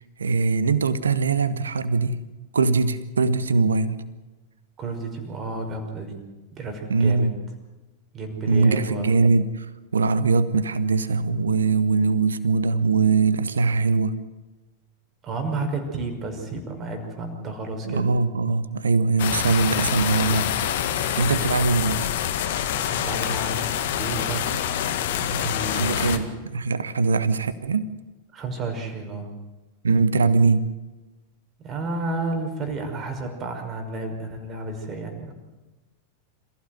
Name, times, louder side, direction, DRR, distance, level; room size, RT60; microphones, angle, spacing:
voice 1, 0.2-2.2 2.5-4.0 6.9-7.4 8.5-9.7 9.9-14.2 17.8-20.7 20.9-22.1 25.7-26.3 26.5-27.9 29.8-30.7, right 4 dB, 70° right, 15 dB, 1.3 m, -21 dB
voice 2, 4.8-6.2 6.5-7.3 8.1-9.1 15.2-18.1 22.9-23.6 23.9-24.5 25.2-26.3 28.3-29.3 31.6-35.3, right 3 dB, 25° right, 4 dB, 5.6 m, -31 dB
sound 1, 19.2-26.2, left 10 dB, 55° left, 1.9 m, -26 dB
27.5 x 15.5 x 7.9 m, 1.1 s
figure-of-eight pair, 90°, 0 cm